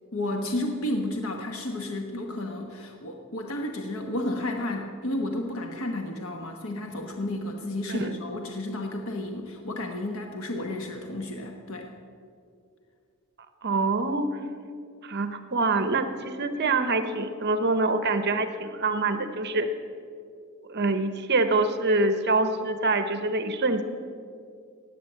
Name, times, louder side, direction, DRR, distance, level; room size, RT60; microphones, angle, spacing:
voice 1, 0.1-11.9, left 1 dB, 85° left, 3 dB, 1.2 m, -32 dB
voice 2, 13.6-14.4 15.0-19.7 20.7-23.8, right 3 dB, 50° right, 9 dB, 0.8 m, -25 dB
16.0 x 9.9 x 7.5 m, 2.4 s
head